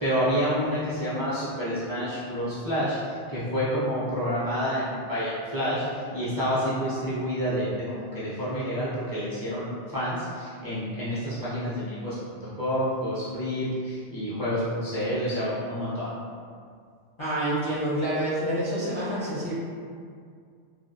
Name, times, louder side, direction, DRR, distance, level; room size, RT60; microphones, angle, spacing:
voice 1, 0.0-16.1, equal, 25° right, -12 dB, 0.5 m, -29 dB
voice 2, 17.2-19.5, right 1 dB, 45° left, -10 dB, 0.4 m, -27 dB
2.4 x 2.0 x 2.6 m, 2.2 s
omnidirectional pair, 1.2 m